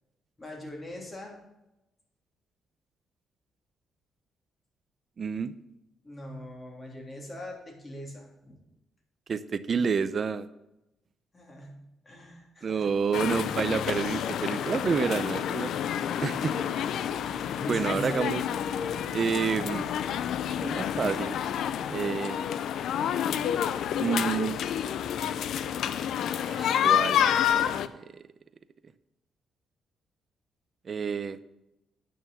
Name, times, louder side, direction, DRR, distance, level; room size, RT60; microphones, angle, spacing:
voice 1, 0.4-1.4 6.0-8.6 11.3-12.9 15.9-18.3, left 1 dB, 25° left, -1 dB, 3.3 m, -42 dB
voice 2, 5.2-5.5 9.3-10.5 12.6-15.7 16.2-16.6 17.7-18.4 19.1-19.9 20.6-21.4 21.9-22.4 24.0-24.6 26.4-27.2 27.9-28.0 30.9-31.4, right 6 dB, 45° right, 14 dB, 0.6 m, -29 dB
sound 1, 13.1-27.9, left 9 dB, 75° left, 0.5 m, -29 dB
9.1 x 6.3 x 7.0 m, 0.92 s
cardioid pair, 90°, 0 cm